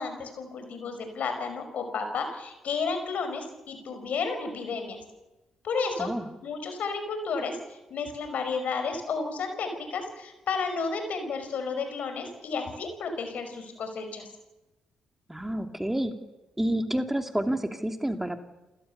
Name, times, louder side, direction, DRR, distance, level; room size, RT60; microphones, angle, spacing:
voice 1, 0.0-5.0 5.6-6.1 6.4-7.6 7.9-14.3, left 4 dB, 65° left, 7 dB, 5.3 m, -32 dB
voice 2, 15.3-16.1 16.6-18.4, right 1 dB, 10° right, 6 dB, 2.7 m, -29 dB
29.5 x 16.5 x 7.0 m, 1.0 s
hypercardioid pair, 45°, 3 cm